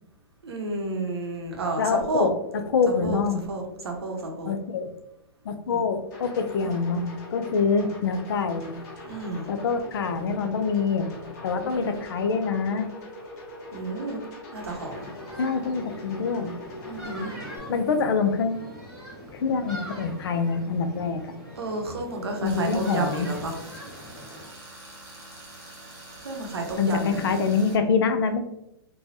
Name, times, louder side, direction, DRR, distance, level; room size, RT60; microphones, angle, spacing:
voice 1, 0.4-2.3 3.0-3.2 3.5-4.5 5.7-5.8 6.6-6.7 9.0-9.5 11.6-12.0 13.7-14.2 14.5-15.1 16.8-17.3 21.6-23.5 26.2-27.4, right 2 dB, 85° right, 2 dB, 0.8 m, -31 dB
voice 2, 1.8-3.5 4.5-4.9 5.4-8.7 9.5-11.1 11.4-12.9 15.4-16.6 17.7-18.6 19.3-21.3 22.4-23.3 26.8-28.4, left 5 dB, 70° left, 8 dB, 0.4 m, -25 dB
sound 1, 6.1-17.6, left 2 dB, 45° left, 1.1 m, -42 dB
sound 2, 14.7-24.5, equal, ahead, 1.4 m, -42 dB
Tools, 22.5-27.7, right 1 dB, 20° right, 1.0 m, -45 dB
3.2 x 2.3 x 2.6 m, 0.82 s
hypercardioid pair, 125°, 13 cm